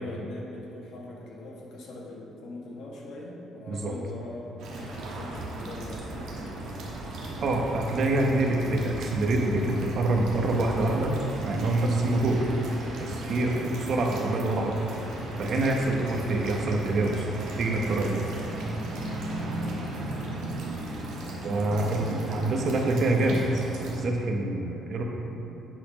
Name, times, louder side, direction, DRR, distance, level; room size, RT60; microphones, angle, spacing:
voice 1, 0.0-7.9 13.3-13.6 16.2-16.5 19.5-20.3, left 1 dB, 75° left, -3 dB, 1.5 m, -42 dB
sound 1, 4.6-24.0, right 1 dB, 80° right, 1.4 m, -36 dB
voice 2, 7.4-11.1 11.4-12.5 13.0-14.7 15.4-17.3 17.6-18.2 21.4-23.4 23.8-25.0, right 2 dB, 55° right, 1 dB, 1.0 m, -26 dB
9.0 x 4.2 x 5.2 m, 2.9 s
cardioid pair, 105°, 0 cm